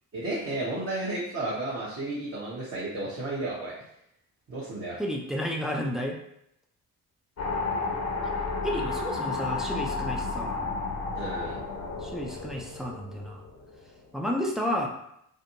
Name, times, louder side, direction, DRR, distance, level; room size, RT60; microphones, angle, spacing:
voice 1, 0.1-3.7 4.5-5.0 11.1-11.6, right 2 dB, 30° right, -8 dB, 0.9 m, -33 dB
voice 2, 5.0-6.2 8.6-10.7 12.0-13.4 14.1-14.9, equal, ahead, 0 dB, 0.3 m, -31 dB
sound 1, 7.4-13.8, left 3 dB, 35° left, 0.7 m, -32 dB
2.6 x 2.1 x 2.6 m, 0.75 s
hypercardioid pair, 40°, 45 cm